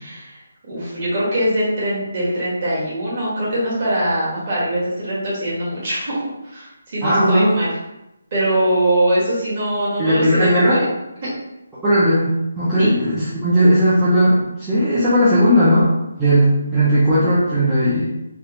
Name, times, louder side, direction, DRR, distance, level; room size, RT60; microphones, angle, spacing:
voice 1, 0.0-7.7 8.3-10.8 11.2-11.3 12.8-12.9, right 1 dB, 35° right, -8 dB, 1.4 m, -22 dB
voice 2, 7.0-7.6 10.0-10.8 11.8-15.9 16.2-18.1, equal, 5° right, -13 dB, 0.5 m, -16 dB
3.3 x 2.3 x 2.9 m, 0.92 s
hypercardioid pair, 170°, 0 cm